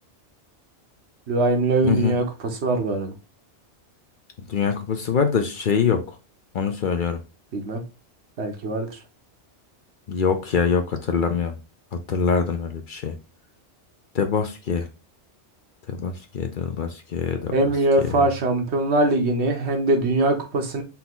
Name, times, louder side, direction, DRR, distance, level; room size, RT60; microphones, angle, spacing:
voice 1, 1.3-3.1 7.5-7.8 8.4-9.0 17.5-20.8, right 2 dB, 75° right, 1.2 m, -22 dB
voice 2, 4.5-6.0 6.5-7.2 10.1-11.5 12.1-13.1 14.1-14.9 15.9-17.5, left 6 dB, 55° left, 0.7 m, -24 dB
4.2 x 2.8 x 3.7 m
omnidirectional pair, 1.2 m